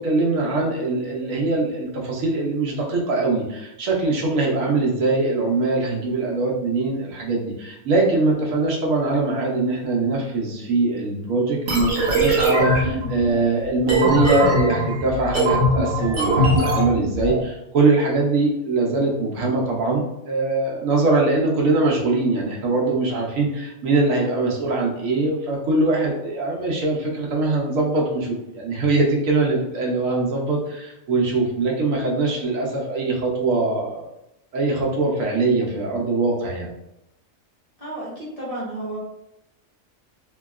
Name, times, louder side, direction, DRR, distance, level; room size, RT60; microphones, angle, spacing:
voice 1, 0.0-34.1 34.5-36.7, right 3 dB, 80° right, -2 dB, 1.1 m, -22 dB
sound 1, 11.7-17.4, right 1 dB, 45° right, 0.8 m, -21 dB
voice 2, 37.8-39.0, right 1 dB, 30° left, -7 dB, 1.0 m, -32 dB
3.0 x 2.7 x 2.3 m, 0.88 s
omnidirectional pair, 1.4 m